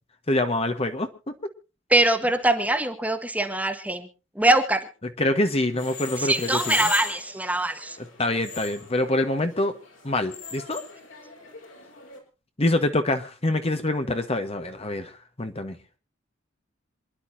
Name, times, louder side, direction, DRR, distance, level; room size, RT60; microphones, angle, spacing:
voice 1, 0.3-1.3 5.2-6.9 8.2-9.7 10.0-10.8 12.6-15.8, left 1 dB, 30° left, 7 dB, 1.3 m, -25 dB
voice 2, 1.9-4.1 4.3-4.9 6.2-8.0, right 1 dB, 10° right, 6 dB, 1.5 m, -23 dB
sound 1, 5.7-12.2, left 5 dB, 75° left, 5.0 m, -38 dB
27.5 x 11.0 x 2.7 m, 0.32 s
head